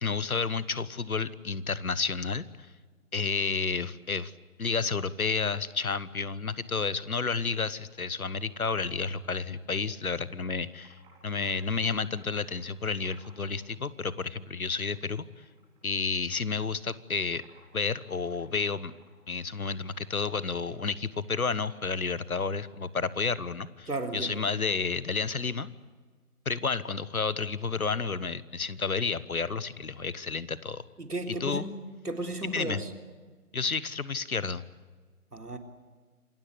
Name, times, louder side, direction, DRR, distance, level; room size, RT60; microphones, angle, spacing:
voice 1, 0.0-2.7 3.1-4.3 4.6-15.2 15.8-17.4 17.7-18.9 19.3-23.9 24.1-25.7 26.4-30.8 31.3-31.6 32.5-32.8 33.5-34.6, left 4 dB, 70° left, 17 dB, 1.4 m, -31 dB
Computer keyboard, 10.3-13.6 13.9-15.1 15.4-16.7 17.0-22.2, right 3 dB, 10° right, 4.3 m, -61 dB
voice 2, 23.9-24.3 31.0-31.7 32.0-32.9 35.3-35.6, right 2 dB, 80° right, 5 dB, 3.8 m, -34 dB
27.5 x 16.5 x 9.7 m, 1.5 s
figure-of-eight pair, 155°, 45 cm